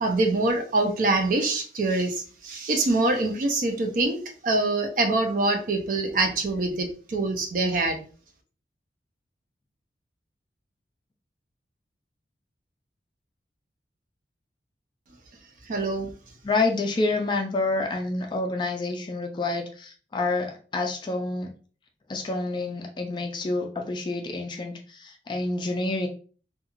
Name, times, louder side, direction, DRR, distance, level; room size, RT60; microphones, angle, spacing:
voice 1, 0.0-8.0 15.7-16.1, right 2 dB, 50° right, 0.5 m, -25 dB
voice 2, 16.4-21.5 22.1-26.1, left 2 dB, 25° left, 0.3 m, -28 dB
2.3 x 2.3 x 3.0 m
head